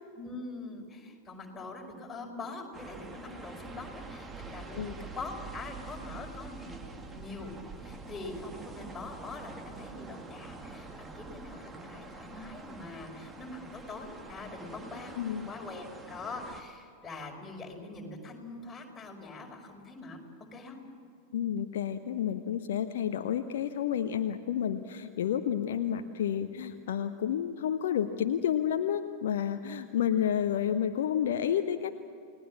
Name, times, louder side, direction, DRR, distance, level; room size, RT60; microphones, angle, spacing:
voice 1, 0.1-6.8 7.1-7.5 7.8-15.2 15.4-20.2 20.5-20.8, left 3 dB, 15° left, 0 dB, 5.0 m, -43 dB
sound 1, 2.7-16.6, right 3 dB, 15° right, 1.9 m, -46 dB
voice 2, 15.2-15.5 21.3-32.0, left 9 dB, 60° left, 8 dB, 0.9 m, -30 dB
29.5 x 19.0 x 7.4 m, 2.4 s
figure-of-eight pair, 90°, 0 cm